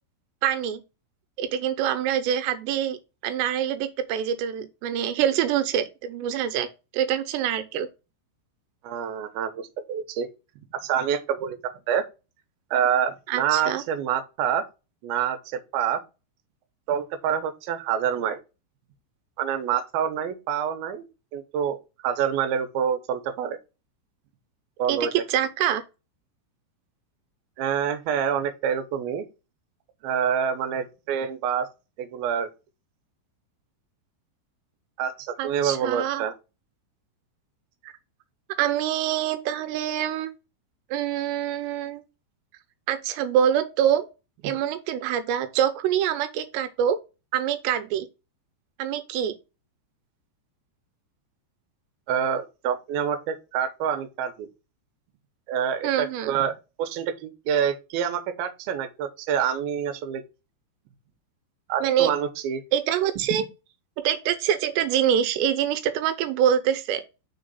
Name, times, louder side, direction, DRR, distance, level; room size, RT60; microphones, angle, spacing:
voice 1, 0.4-0.8 1.4-3.0 3.2-6.7 6.9-7.9 13.3-13.8 24.9-25.8 35.4-36.2 37.8-37.9 38.6-40.3 40.9-42.0 42.9-44.1 44.4-47.0 47.3-48.1 48.8-49.4 55.8-56.4 61.8-62.1 62.7-63.4 64.0-67.0, right 10 dB, 90° right, 2.9 m, -25 dB
voice 2, 8.8-10.3 10.7-12.1 12.7-14.7 15.0-16.0 16.9-18.4 19.4-21.1 21.3-21.8 22.0-23.6 24.8-25.1 27.6-29.2 30.0-31.7 32.0-32.5 35.0-36.3 44.4-44.5 52.1-54.5 55.5-60.2 61.7-62.6 63.3-63.4, right 8 dB, 70° right, 2.6 m, -27 dB
6.1 x 3.8 x 5.5 m
omnidirectional pair, 4.9 m